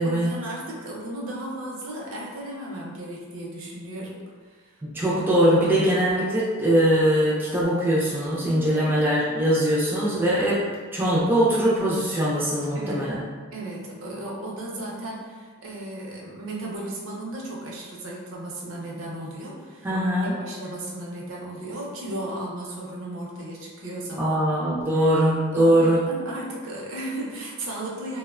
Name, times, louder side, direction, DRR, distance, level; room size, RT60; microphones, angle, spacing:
voice 1, 0.0-5.1 8.7-8.9 12.7-13.1 13.5-19.9 20.2-24.4 24.9-25.1 25.5-28.2, right 1 dB, 65° right, -3 dB, 0.5 m, -35 dB
voice 2, 4.8-10.6 10.9-13.2 19.8-20.3 24.2-26.1, right 1 dB, 10° right, -7 dB, 0.3 m, -21 dB
2.9 x 2.0 x 2.3 m, 1.5 s
head